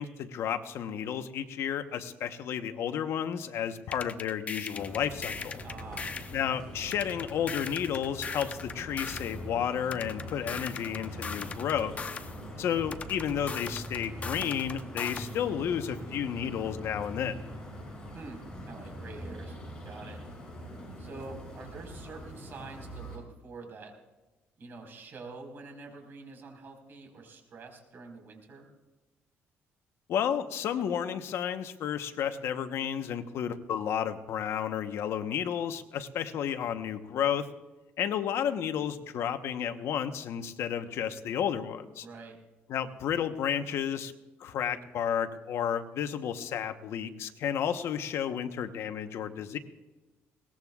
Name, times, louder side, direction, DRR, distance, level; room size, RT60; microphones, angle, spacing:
voice 1, 0.0-5.6 6.3-12.0 12.6-17.4 30.1-37.5 38.0-42.1 42.7-44.1 44.4-49.6, left 9 dB, 70° left, 8 dB, 1.0 m, -32 dB
sound 1, 3.9-6.4 6.9-9.4 9.9-12.4 12.9-15.4, left 5 dB, 30° left, 1.0 m, -39 dB
sound 2, 4.7-23.2, equal, 15° left, 6.7 m, -43 dB
voice 2, 5.6-6.1 18.1-18.4 18.7-19.6 19.8-20.2 21.0-23.9 24.6-28.7 42.0-42.4, right 3 dB, 50° right, 3 dB, 4.6 m, -46 dB
22.0 x 19.0 x 2.4 m, 1.1 s
cardioid pair, 120°, 5 cm